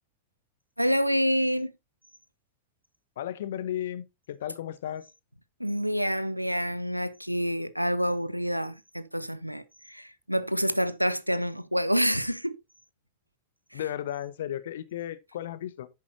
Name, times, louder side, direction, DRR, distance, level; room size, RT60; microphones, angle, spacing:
voice 1, 0.8-1.7 5.6-12.6 13.7-13.8, equal, 90° right, 0.6 m, -27 dB
voice 2, 3.2-5.0 13.7-15.9, left 11 dB, 60° left, 0.9 m, -34 dB
10.5 x 8.6 x 2.7 m
figure-of-eight pair, 90°, 0 cm